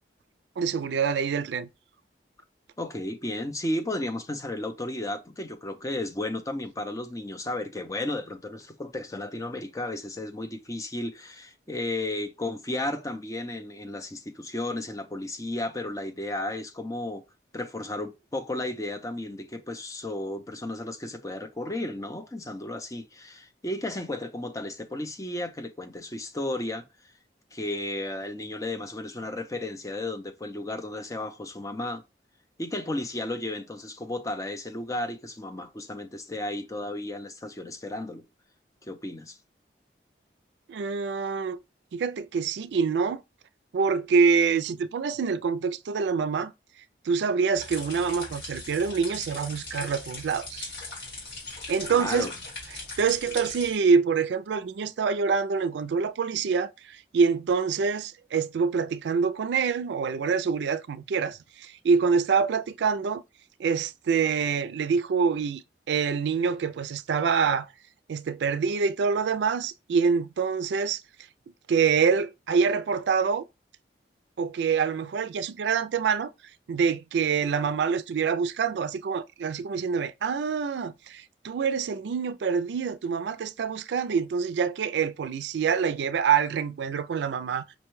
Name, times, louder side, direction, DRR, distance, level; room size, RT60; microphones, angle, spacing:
voice 1, 0.6-1.7 40.7-41.6 41.9-43.2 43.7-46.5 47.1-50.7 51.7-52.3 53.0-63.2 63.6-65.6 65.9-67.7 68.1-71.0 71.7-73.5 74.4-76.3 76.7-87.7, right 5 dB, 80° right, 0.3 m, -26 dB
voice 2, 2.8-17.2 17.5-26.8 27.5-32.0 32.6-38.2 38.8-39.4 51.5-52.3, left 1 dB, 20° left, 0.5 m, -33 dB
sound 1, 47.5-53.7, left 2 dB, 80° left, 2.2 m, -39 dB
5.2 x 2.2 x 3.1 m
head